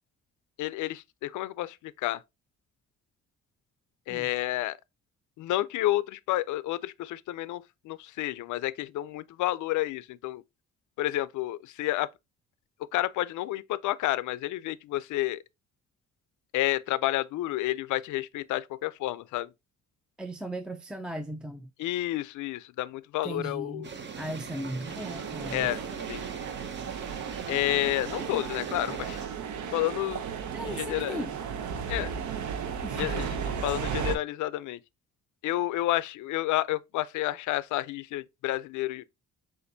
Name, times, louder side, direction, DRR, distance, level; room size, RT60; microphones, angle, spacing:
voice 1, 0.6-2.2 4.1-4.8 5.4-10.4 11.0-12.1 12.9-15.4 16.5-19.5 21.8-23.9 25.5-25.8 26.1-26.2 27.5-29.2 29.7-30.2 30.6-31.2 31.9-32.1 32.9-34.8 35.4-39.0, left 15 dB, 75° left, 0.4 m, -30 dB
voice 2, 20.2-21.7 23.2-23.9 24.2-25.7 30.5-31.3 32.8-33.3, right 1 dB, 5° right, 0.4 m, -37 dB
sound 1, 23.8-29.3, right 6 dB, 35° right, 0.7 m, -41 dB
sound 2, 24.8-34.2, right 7 dB, 70° right, 0.7 m, -35 dB
6.5 x 2.6 x 2.6 m
cardioid pair, 90°, 30 cm